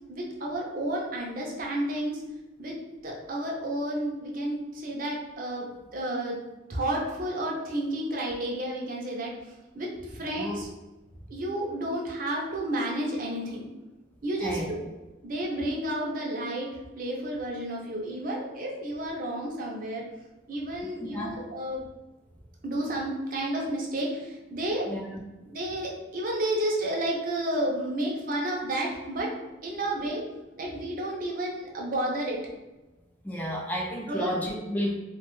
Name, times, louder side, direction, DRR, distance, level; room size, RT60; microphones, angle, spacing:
voice 1, 0.1-2.2 2.6-2.7 3.0-6.4 6.7-9.3 9.7-10.7 11.3-13.7 14.2-14.8 15.2-16.7 17.0-20.0 20.5-21.8 22.6-24.9 25.4-29.3 29.6-30.2 30.6-32.4 34.1-34.4, right 1 dB, 45° right, -2 dB, 0.5 m, -31 dB
voice 2, 21.0-21.4 24.9-25.0 33.2-34.9, equal, 10° left, -1 dB, 0.4 m, -31 dB
2.7 x 2.1 x 3.0 m, 1.1 s
head